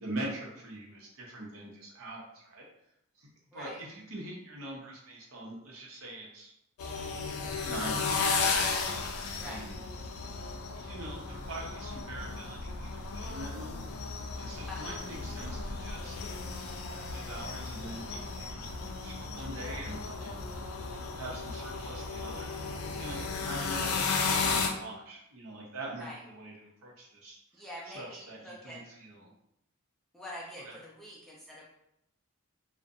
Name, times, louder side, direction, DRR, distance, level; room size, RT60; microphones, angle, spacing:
voice 1, 0.0-2.6 3.2-3.3 3.5-6.5 7.6-8.6 9.4-9.8 10.7-13.9 14.4-16.2 16.8-18.6 19.0-20.5 21.2-22.6 23.0-29.3 30.7-30.8, right 1 dB, 75° right, -2 dB, 0.7 m, -43 dB
sound 1, 6.8-24.7, left 4 dB, 75° left, 0.4 m, -34 dB
voice 2, 14.7-15.0 26.0-26.2 27.5-28.8 30.1-31.6, left 1 dB, ahead, -5 dB, 0.3 m, -45 dB
2.4 x 2.1 x 2.6 m, 0.79 s
head